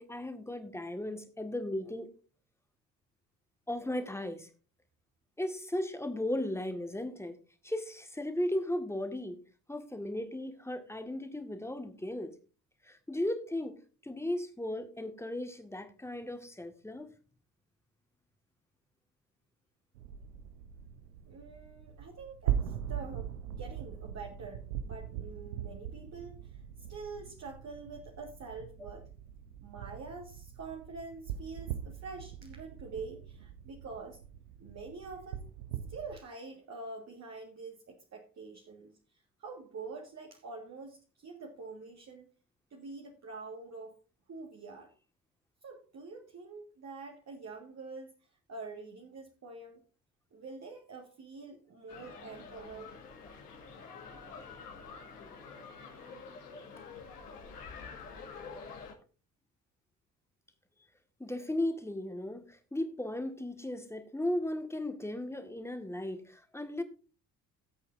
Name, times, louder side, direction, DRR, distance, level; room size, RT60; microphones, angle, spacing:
voice 1, 0.0-2.1 3.7-4.5 5.4-7.4 7.6-9.4 9.7-12.3 12.8-17.1 61.2-66.8, left 1 dB, 5° left, 6 dB, 1.7 m, -36 dB
sound 1, 19.9-36.2, right 10 dB, 75° right, 0.8 m, -41 dB
voice 2, 21.2-26.6 26.9-29.1 29.6-34.2 34.6-35.4 35.9-42.3 42.7-44.0 44.3-44.9 45.6-49.8 50.3-52.9, right 4 dB, 35° right, 1 dB, 1.8 m, -46 dB
sound 2, 51.9-58.9, left 5 dB, 80° left, 1.9 m, -47 dB
17.0 x 8.2 x 2.6 m, 0.35 s
figure-of-eight pair, 50°, 46 cm